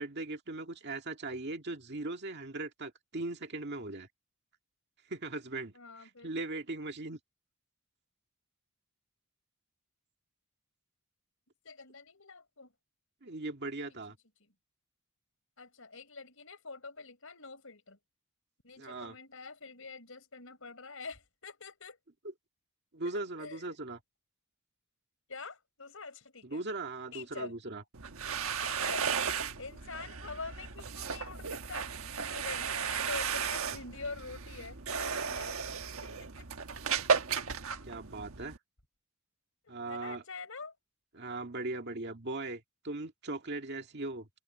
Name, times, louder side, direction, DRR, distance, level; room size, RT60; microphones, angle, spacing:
voice 1, 0.0-4.1 5.1-7.2 13.2-14.2 18.8-19.2 22.9-24.0 26.4-27.8 37.8-38.6 39.7-40.2 41.1-44.3, right 2 dB, 50° right, 2.0 m, -39 dB
voice 2, 5.7-6.3 11.6-12.7 15.6-18.0 18.6-22.0 23.4-23.9 25.3-26.6 27.1-27.5 28.6-29.1 29.6-31.9 32.3-35.7 36.0-36.5 39.7-40.7, left 4 dB, 65° left, 6.0 m, -45 dB
sound 1, 27.9-38.6, right 6 dB, 75° right, 1.4 m, -35 dB
open air
head